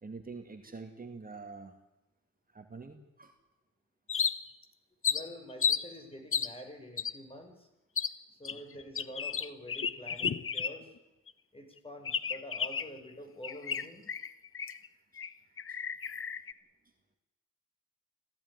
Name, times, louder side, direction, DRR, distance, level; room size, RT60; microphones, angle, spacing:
voice 1, 0.0-1.8 2.5-3.3 8.5-8.6 15.1-15.2 15.7-15.8, right 4 dB, 30° right, 5 dB, 2.3 m, -46 dB
sound 1, 4.1-4.6 5.0-5.8 6.3-6.5 7.0-7.1 8.0-8.1 8.4-11.0 11.3-11.4 12.0-13.0 13.4-14.9 15.2-15.3 15.6-16.5, left 6 dB, 45° left, 1.0 m, -33 dB
voice 2, 5.1-7.7 8.3-10.9 11.5-14.1, equal, 20° left, 4 dB, 5.5 m, -47 dB
26.5 x 16.0 x 9.7 m, 0.97 s
wide cardioid pair, 115°, 30 cm